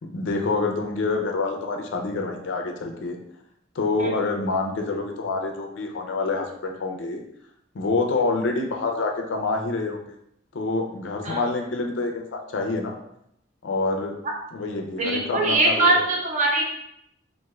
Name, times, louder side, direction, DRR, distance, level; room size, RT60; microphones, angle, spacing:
voice 1, 0.0-3.2 3.7-7.2 7.7-10.1 10.5-12.9 13.6-14.1 14.5-16.0, left 3 dB, 70° left, 2 dB, 0.4 m, -27 dB
voice 2, 15.0-16.6, right 2 dB, 40° right, -1 dB, 0.6 m, -21 dB
3.0 x 2.5 x 2.3 m, 0.77 s
head